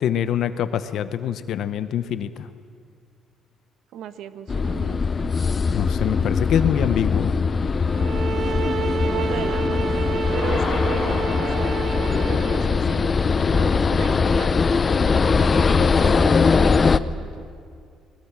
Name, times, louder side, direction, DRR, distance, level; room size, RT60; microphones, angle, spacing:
voice 1, 0.0-2.5 5.7-7.3, left 9 dB, 55° left, 12 dB, 0.8 m, -24 dB
voice 2, 3.9-5.0 8.3-9.8 10.3-11.9 12.2-17.5, right 9 dB, 70° right, 11 dB, 1.1 m, -37 dB
sound 1, 4.5-17.0, left 5 dB, 25° left, 0.5 m, -21 dB
sound 2, 7.9-12.9, right 6 dB, 40° right, 0.5 m, -29 dB
21.5 x 20.0 x 7.4 m, 2.2 s
cardioid pair, 165°, 0 cm